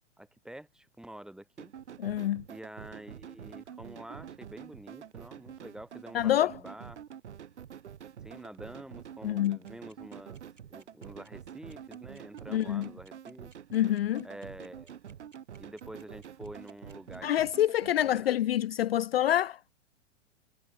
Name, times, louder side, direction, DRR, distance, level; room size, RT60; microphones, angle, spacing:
voice 1, 0.2-1.7 2.5-7.0 8.2-10.4 10.7-13.5 14.2-14.9 15.6-17.3 18.0-18.3, right 1 dB, ahead, 1.5 m, -47 dB
sound 1, 1.6-18.2, right 9 dB, 65° right, 1.5 m, -47 dB
voice 2, 2.0-2.4 6.1-6.5 9.2-9.6 12.5-12.9 13.7-14.2 17.2-19.6, left 12 dB, 55° left, 0.5 m, -26 dB
sound 2, 9.4-17.6, right 4 dB, 80° right, 7.6 m, -60 dB
figure-of-eight pair, 110°, 37 cm